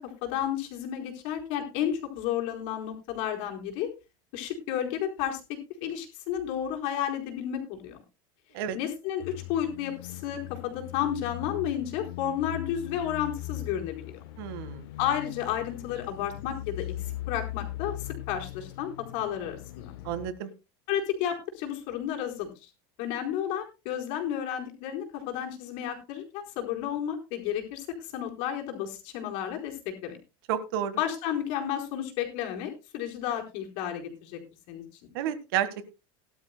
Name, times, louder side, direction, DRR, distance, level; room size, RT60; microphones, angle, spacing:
voice 1, 0.0-3.9 4.3-8.0 8.7-14.2 15.0-16.9 17.3-19.9 20.9-22.7 23.0-30.2 31.0-34.4 34.7-35.0, left 10 dB, 55° left, 3 dB, 4.1 m, -32 dB
sound 1, 9.2-20.3, left 14 dB, 80° left, 1.1 m, -40 dB
voice 2, 14.4-14.8 20.0-20.5 30.5-31.0 35.1-35.9, right 10 dB, 70° right, 12 dB, 1.6 m, -31 dB
18.5 x 12.0 x 2.2 m, 0.26 s
cardioid pair, 170°, 12 cm